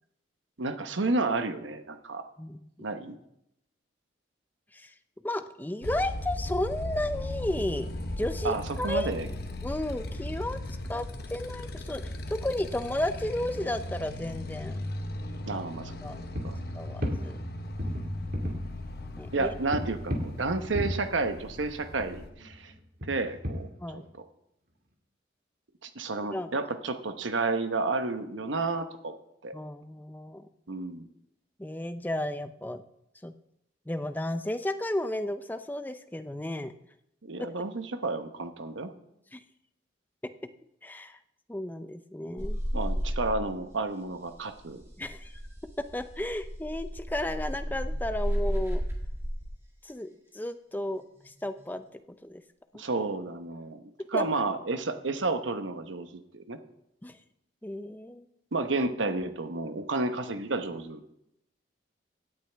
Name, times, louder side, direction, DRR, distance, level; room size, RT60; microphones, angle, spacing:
voice 1, 0.6-2.2 2.8-3.2 8.4-9.3 15.5-16.0 16.4-16.6 19.3-22.7 23.1-24.0 25.8-29.1 29.4-29.5 30.7-31.0 37.2-38.9 42.7-44.8 52.7-56.6 58.5-61.1, right 3 dB, 85° right, 9 dB, 1.0 m, -31 dB
voice 2, 5.2-7.9 8.2-9.1 9.6-10.6 10.9-11.0 11.3-14.8 16.0-16.2 16.7-17.4 19.2-19.5 23.8-24.1 26.3-26.5 29.5-30.5 31.6-32.8 33.2-33.3 33.9-36.7 37.4-37.6 39.3-39.4 40.8-41.2 41.5-42.6 45.0-45.4 45.9-48.8 49.8-52.4 52.7-52.8 54.0-54.2 57.0-57.2 57.6-58.2, left 1 dB, 10° left, 10 dB, 0.5 m, -33 dB
Motorcycle, 5.8-22.3, left 1 dB, 55° left, 1.0 m, -37 dB
sound 1, 16.0-17.5 17.8-18.6 19.7-21.6 21.9-24.1, equal, 50° right, 2.0 m, -34 dB
sound 2, 42.4-43.8 44.1-49.5 51.2-51.7, equal, 15° right, 1.8 m, -33 dB
17.0 x 9.2 x 3.4 m, 0.80 s
head